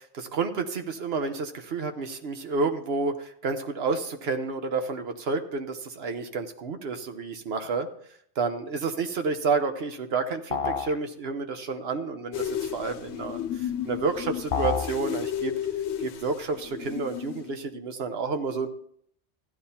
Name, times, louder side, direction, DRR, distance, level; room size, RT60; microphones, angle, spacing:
voice 1, 0.2-7.9 8.4-15.6 16.0-18.7, right 4 dB, 70° right, 6 dB, 1.2 m, -30 dB
sound 1, 10.5-11.0 14.5-15.0, left 6 dB, 50° left, 0.4 m, -27 dB
sound 2, 12.3-17.5, left 10 dB, 85° left, 0.8 m, -33 dB
15.0 x 11.0 x 2.8 m, 0.65 s
omnidirectional pair, 1.1 m